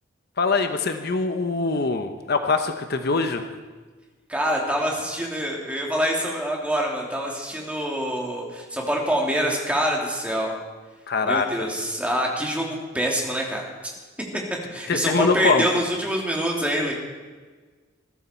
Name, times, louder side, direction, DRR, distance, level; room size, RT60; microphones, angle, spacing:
voice 1, 0.4-3.5 11.1-11.7 14.9-15.8, left 4 dB, 55° left, 7 dB, 0.9 m, -23 dB
voice 2, 4.3-10.5 11.2-13.6 14.7-16.9, equal, 5° right, -1 dB, 3.0 m, -25 dB
21.5 x 14.0 x 4.5 m, 1.4 s
head